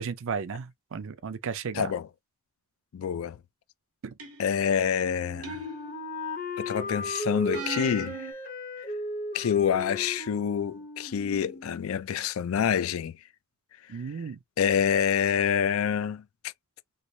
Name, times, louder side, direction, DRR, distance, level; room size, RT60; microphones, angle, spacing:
voice 1, 0.0-1.9 4.0-4.1 13.9-14.4, right 6 dB, 65° right, 0.5 m, -34 dB
voice 2, 1.7-2.1 2.9-3.4 4.4-5.6 6.6-8.3 9.3-13.2 14.6-16.2, left 8 dB, 65° left, 0.4 m, -27 dB
sound 1, 4.2-4.7 5.4-6.3 7.5-8.3, right 4 dB, 85° right, 1.0 m, -38 dB
Wind instrument woodwind instrument, 5.0-11.9, left 2 dB, 40° left, 0.8 m, -36 dB
3.2 x 3.0 x 2.7 m
head